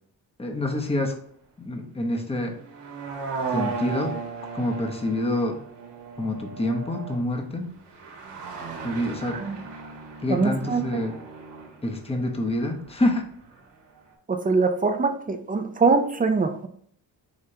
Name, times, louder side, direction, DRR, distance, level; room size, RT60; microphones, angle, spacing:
voice 1, 0.4-1.1 1.6-2.6 3.5-4.2 4.5-5.6 6.2-7.7 8.8-9.4 10.2-11.1 11.8-13.2, left 1 dB, 15° left, 2 dB, 0.9 m, -27 dB
sound 1, 2.5-13.6 13.9-14.0, right 5 dB, 80° right, 1.3 m, -36 dB
voice 2, 9.2-9.6 10.3-10.8 14.3-16.7, right 4 dB, 20° right, 7 dB, 0.5 m, -23 dB
5.0 x 3.3 x 2.8 m, 0.62 s
cardioid pair, 80°, 41 cm